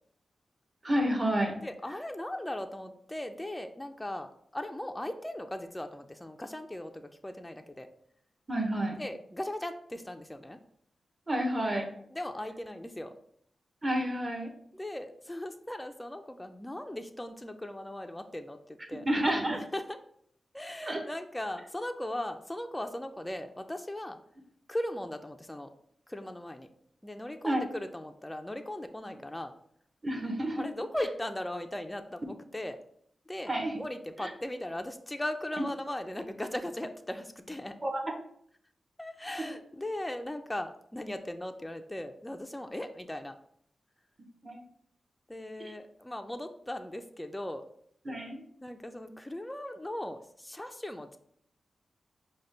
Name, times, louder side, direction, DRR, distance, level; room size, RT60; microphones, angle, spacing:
voice 1, 0.8-1.6 8.5-9.0 11.3-11.9 13.8-14.5 19.1-19.6 20.8-21.0 27.4-27.6 30.0-30.6 33.5-33.8 34.2-34.3 35.6-35.7 37.8-38.0 39.4-39.5 44.4-44.7 45.6-45.7 48.0-48.4, right 1 dB, 25° right, 4 dB, 0.8 m, -30 dB
voice 2, 1.6-7.9 9.0-10.6 12.1-13.2 14.7-19.1 19.5-20.0 20.5-24.2 24.7-25.7 26.1-26.7 27.0-29.5 30.6-32.8 33.3-37.8 39.0-43.4 45.3-47.6 48.6-51.2, left 1 dB, 10° left, 6 dB, 0.3 m, -38 dB
5.0 x 2.2 x 3.2 m, 0.66 s
cardioid pair, 75°, 0 cm